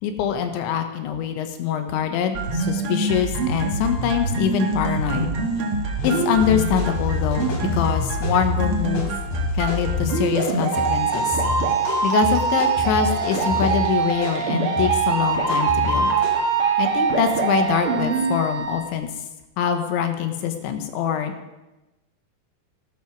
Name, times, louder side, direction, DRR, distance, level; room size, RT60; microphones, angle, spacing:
voice 1, 0.0-5.3 6.0-9.1 9.5-11.4 12.0-16.1 16.8-19.1 19.6-21.3, left 8 dB, 85° left, 7 dB, 3.6 m, -24 dB
sound 1, 2.3-18.4, right 4 dB, 45° right, 1.8 m, -24 dB
sound 2, 6.0-16.3, left 5 dB, 65° left, 5.4 m, -30 dB
Wind instrument woodwind instrument, 10.7-18.9, right 6 dB, 70° right, 2.0 m, -32 dB
18.0 x 12.5 x 4.7 m, 1.0 s
omnidirectional pair, 5.1 m